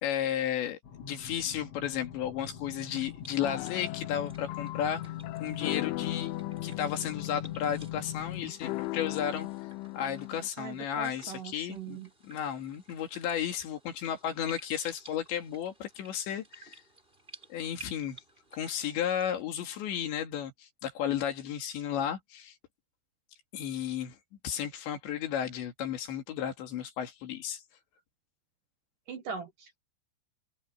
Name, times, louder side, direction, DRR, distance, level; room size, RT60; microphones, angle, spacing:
voice 1, 0.0-5.1 5.4-6.3 6.6-9.5 9.9-12.0 12.2-16.8 17.5-18.2 18.5-22.5 23.5-24.2 24.4-27.6, left 9 dB, 75° left, 4.5 m, -33 dB
sound 1, 0.8-8.5, left 12 dB, 45° left, 2.3 m, -41 dB
sound 2, 2.7-19.4, right 2 dB, 10° right, 4.3 m, -56 dB
sound 3, 3.4-10.5, left 20 dB, 90° left, 3.2 m, -39 dB
voice 2, 10.6-12.1 29.1-29.8, right 6 dB, 60° right, 2.5 m, -41 dB
open air
omnidirectional pair, 5.3 m